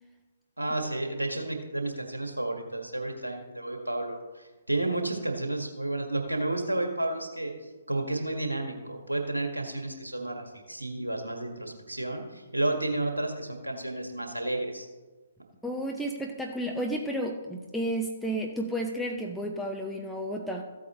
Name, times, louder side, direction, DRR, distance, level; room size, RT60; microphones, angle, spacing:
voice 1, 0.6-7.5 7.9-14.9, right 2 dB, 80° right, 3 dB, 1.7 m, -31 dB
voice 2, 15.6-20.6, right 1 dB, ahead, 0 dB, 0.7 m, -32 dB
14.5 x 8.4 x 3.0 m, 1.3 s
figure-of-eight pair, 130°, 0 cm